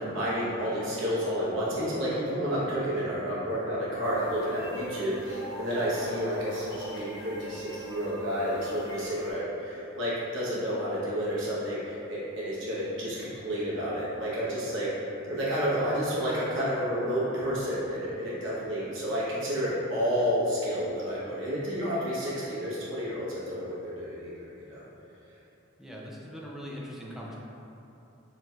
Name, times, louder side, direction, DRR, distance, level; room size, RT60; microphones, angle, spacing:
voice 1, 0.0-14.9 15.3-24.8, equal, 70° right, -8 dB, 1.0 m, -30 dB
sound 1, 4.0-9.3, right 1 dB, 60° left, 0.8 m, -41 dB
voice 2, 25.8-27.4, equal, ahead, -4 dB, 0.4 m, -41 dB
4.3 x 3.1 x 2.3 m, 2.9 s
head